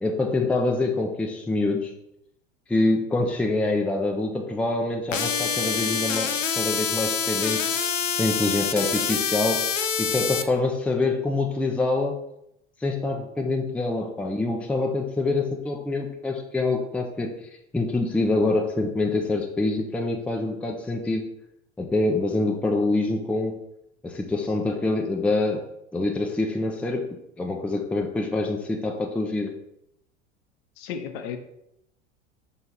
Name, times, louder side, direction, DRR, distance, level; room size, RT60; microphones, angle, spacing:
voice 1, 0.0-1.9 2.7-7.7 8.2-9.7 10.0-12.2 12.8-17.3 17.7-21.2 21.8-23.6 24.0-25.6 25.9-27.1 27.4-29.5, left 2 dB, 5° left, 2 dB, 0.5 m, -25 dB
sound 1, 5.1-10.4, left 7 dB, 90° left, 0.5 m, -26 dB
voice 2, 30.8-31.4, left 7 dB, 50° left, 7 dB, 0.8 m, -33 dB
5.7 x 4.3 x 3.9 m, 0.78 s
figure-of-eight pair, 75°, 38 cm